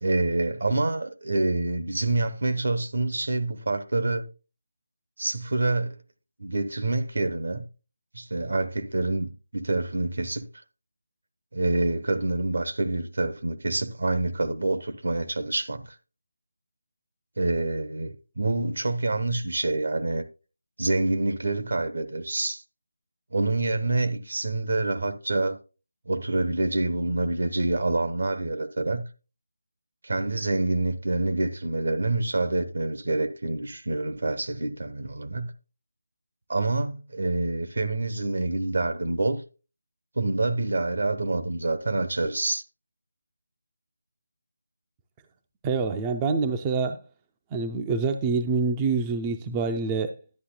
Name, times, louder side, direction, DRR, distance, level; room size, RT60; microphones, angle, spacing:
voice 1, 0.0-4.3 5.2-6.0 6.4-7.6 8.1-10.5 11.5-15.9 17.4-20.2 20.8-22.6 23.3-25.6 26.1-29.0 30.0-35.5 36.5-39.4 40.2-42.6, right 2 dB, 65° right, 1.0 m, -27 dB
voice 2, 45.6-47.0 47.5-50.1, right 4 dB, 15° right, 0.4 m, -26 dB
11.0 x 9.8 x 2.2 m
figure-of-eight pair, 160°, 0 cm